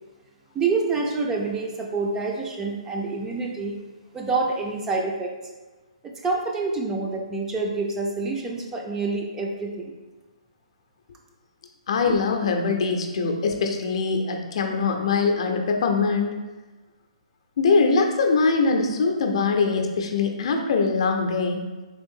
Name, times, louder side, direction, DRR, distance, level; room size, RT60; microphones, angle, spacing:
voice 1, 0.5-3.7 4.1-5.3 6.0-9.9, right 3 dB, 15° right, 0 dB, 0.3 m, -27 dB
voice 2, 11.9-16.4 17.6-21.6, left 4 dB, 55° left, 4 dB, 0.5 m, -22 dB
3.5 x 2.5 x 3.6 m, 1.2 s
hypercardioid pair, 145°, 4 cm